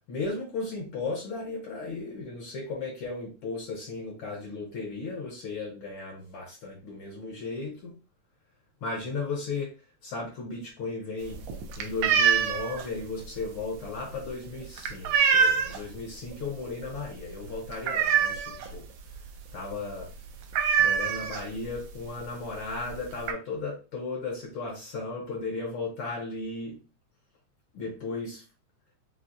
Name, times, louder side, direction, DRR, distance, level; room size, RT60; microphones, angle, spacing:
voice 1, 0.1-7.9 8.8-9.7 10.0-11.4 11.8-18.8 19.5-20.1 20.8-26.8 27.7-28.4, left 3 dB, 70° left, -1 dB, 1.3 m, -35 dB
sound 1, 11.2-16.0 16.3-16.6 16.9-17.0 17.4-18.8 19.1-19.2 19.5-19.7 20.0-20.1 20.5-21.8 22.5-22.6 22.9-23.3, right 7 dB, 80° right, 1.5 m, -25 dB
5.5 x 2.2 x 2.5 m, 0.33 s
omnidirectional pair, 3.5 m